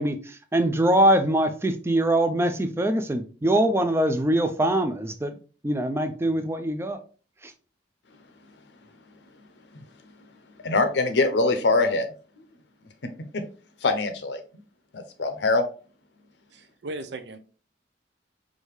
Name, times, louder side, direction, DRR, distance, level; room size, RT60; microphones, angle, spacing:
voice 1, 0.0-5.3 5.6-7.0 7.4-7.5, right 1 dB, 15° right, 0.4 m, -23 dB
voice 2, 10.6-12.1 13.3-13.4 13.8-14.4 14.9-15.6, left 3 dB, 75° left, 0.7 m, -23 dB
voice 3, 16.5-17.4, right 2 dB, 70° right, 0.6 m, -37 dB
4.8 x 2.7 x 3.2 m
head